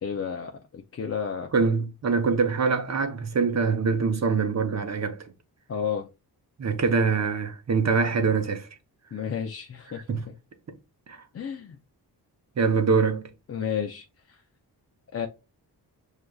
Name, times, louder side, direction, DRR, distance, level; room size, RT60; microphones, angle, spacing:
voice 1, 0.0-1.5 5.7-6.1 9.1-10.0 11.3-11.8 13.5-14.4 15.1-15.3, left 7 dB, 35° left, 0.5 m, -32 dB
voice 2, 1.5-5.3 6.6-8.7 10.1-10.2 11.1-11.2 12.6-13.2, right 5 dB, 40° right, 0.7 m, -24 dB
6.4 x 2.4 x 2.3 m
cardioid pair, 80°, 40 cm